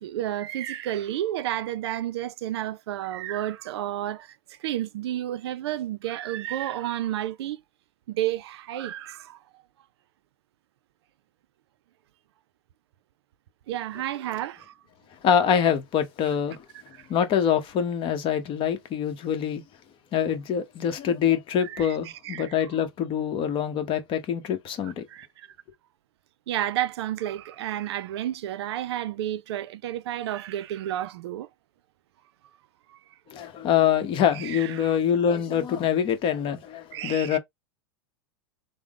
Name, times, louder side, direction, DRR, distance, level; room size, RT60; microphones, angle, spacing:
voice 1, 0.0-7.6 8.1-9.4 13.7-14.7 16.9-17.1 21.6-22.0 22.2-22.5 24.8-25.5 26.5-31.5 32.9-33.0 34.3-35.0 36.9-37.4, right 12 dB, 75° right, 0.4 m, -31 dB
voice 2, 15.2-16.7 17.1-19.6 20.1-25.0 33.3-37.4, left 8 dB, 40° left, 0.9 m, -25 dB
3.6 x 2.1 x 3.5 m
hypercardioid pair, 110°, 14 cm